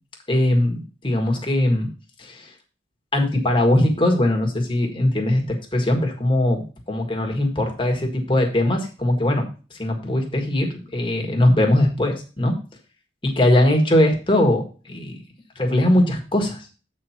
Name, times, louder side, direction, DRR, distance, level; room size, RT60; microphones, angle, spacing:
voice 1, 0.3-1.9 2.2-2.5 3.1-9.5 9.8-12.5 13.2-15.2 15.5-16.6, left 1 dB, 25° left, 2 dB, 1.6 m, -20 dB
8.3 x 4.4 x 5.7 m, 0.34 s
head